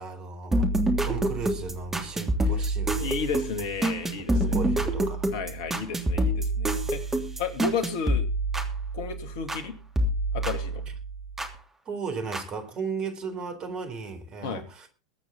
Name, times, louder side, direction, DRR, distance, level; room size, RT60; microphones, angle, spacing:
voice 1, 0.0-3.1 4.2-5.3 6.9-7.0 11.9-14.9, right 5 dB, 35° right, 3.8 m, -36 dB
sound 1, 0.5-9.7 10.0-11.5 12.3-12.4, right 1 dB, 15° right, 3.0 m, -27 dB
voice 2, 3.0-4.7 5.3-7.0 7.4-8.3 8.9-9.8 10.3-10.8 14.4-14.6, left 5 dB, 55° left, 2.5 m, -33 dB
22.5 x 8.9 x 3.9 m
figure-of-eight pair, 85°, 2 cm